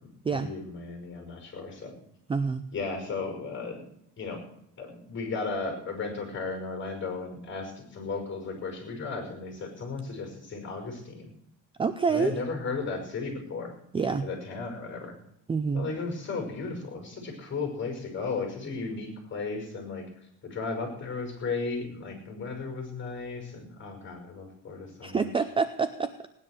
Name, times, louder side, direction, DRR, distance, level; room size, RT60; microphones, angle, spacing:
voice 1, 0.0-2.0 2.7-3.8 4.2-4.4 4.8-11.3 12.1-13.7 14.2-15.2 15.7-20.0 20.4-25.3, left 4 dB, 30° left, 3 dB, 5.5 m, -35 dB
voice 2, 2.3-2.6 11.8-12.3 13.9-14.3 15.5-15.9 25.0-26.3, right 5 dB, 15° right, 10 dB, 0.5 m, -27 dB
18.0 x 10.0 x 6.3 m, 0.74 s
cardioid pair, 150°, 36 cm